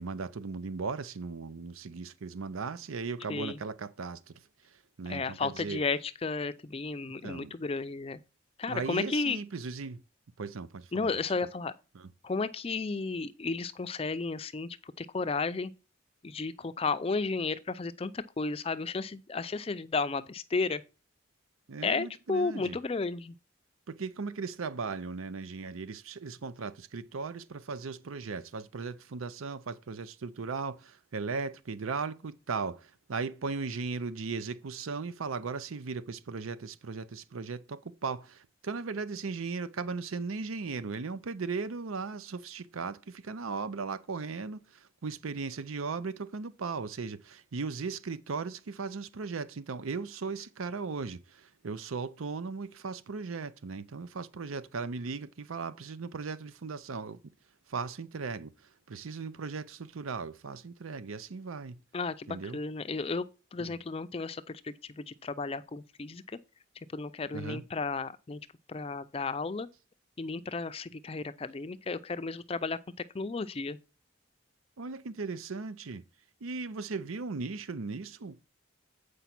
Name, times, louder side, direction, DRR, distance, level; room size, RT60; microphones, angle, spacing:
voice 1, 0.0-4.4 5.0-5.8 7.2-7.5 8.7-10.0 10.4-11.1 11.9-12.1 21.7-22.8 23.9-57.3 57.7-58.5 58.9-61.8 62.3-62.6 63.6-63.7 67.3-67.6 74.8-76.0 76.4-78.4, right 4 dB, 85° right, 0.6 m, -37 dB
voice 2, 3.3-3.6 5.1-8.2 8.6-9.4 10.9-11.7 12.2-15.7 16.2-20.8 21.8-23.3 61.9-63.3 63.5-66.2 66.9-68.4 68.7-69.7 70.2-72.8 73.1-73.8, left 4 dB, 30° left, 0.4 m, -33 dB
8.2 x 5.0 x 5.9 m
head